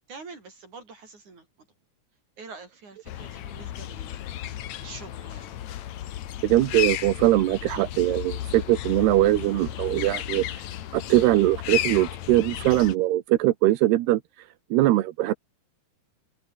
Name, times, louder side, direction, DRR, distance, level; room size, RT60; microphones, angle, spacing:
voice 1, 0.1-1.7 2.4-5.6, right 4 dB, 45° right, 8.1 m, -46 dB
sound 1, 3.1-13.0, left 12 dB, 60° left, 2.0 m, -34 dB
voice 2, 6.4-10.6 10.9-15.3, right 15 dB, 85° right, 3.2 m, -22 dB
omnidirectional pair, 4.6 m